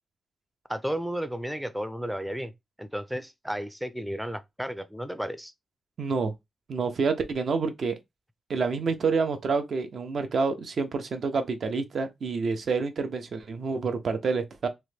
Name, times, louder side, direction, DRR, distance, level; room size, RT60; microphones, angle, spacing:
voice 1, 0.7-2.5 2.8-5.5, equal, 5° right, 0.4 m, -33 dB
voice 2, 6.0-6.3 6.7-8.0 8.5-14.7, right 4 dB, 60° right, 0.6 m, -28 dB
3.0 x 2.1 x 3.2 m
cardioid pair, 95°, 0 cm